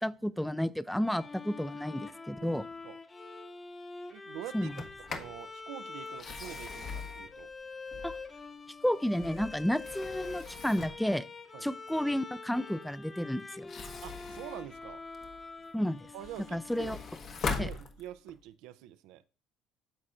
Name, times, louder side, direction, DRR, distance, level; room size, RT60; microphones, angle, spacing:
voice 1, 0.0-2.7 4.5-4.7 8.0-8.2 8.8-11.3 11.6-13.7 15.7-16.0 16.5-17.0 17.6-17.7, equal, 5° left, 0.4 m, -31 dB
Bowed string instrument, 1.0-17.6, left 3 dB, 30° left, 1.0 m, -45 dB
voice 2, 2.4-3.0 4.1-7.5 11.5-11.7 14.0-15.1 16.1-17.0 17.6-19.2, right 12 dB, 80° right, 0.5 m, -46 dB
Sliding door, 4.6-5.4 6.1-8.4 8.9-11.1 13.5-15.4 15.9-18.4, left 4 dB, 50° left, 1.1 m, -41 dB
12.5 x 4.2 x 2.4 m
supercardioid pair, 80°, 0 cm